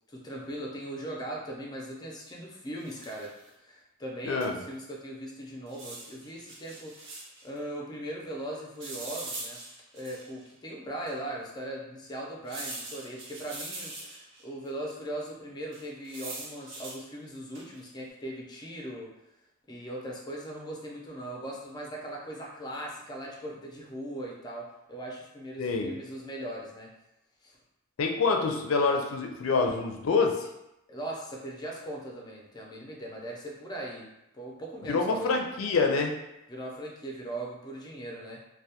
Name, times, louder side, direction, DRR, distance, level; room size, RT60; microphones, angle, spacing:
voice 1, 0.1-7.1 7.4-9.6 9.9-19.1 19.7-26.9 27.4-27.6 30.9-35.3 36.5-38.4, right 1 dB, 20° left, -2 dB, 0.4 m, -39 dB
sound 1, 2.8-3.4 4.4-4.5 4.7-4.8 5.7-7.5 8.8-10.4 11.1-11.2 12.5-14.4 15.7-17.0 17.5-17.9, right 2 dB, 60° right, 0.6 m, -42 dB
voice 2, 4.3-4.6 25.6-25.9 28.0-30.5 34.9-36.1, left 4 dB, 80° left, 3 dB, 0.4 m, -26 dB
2.2 x 2.1 x 2.8 m, 0.88 s
head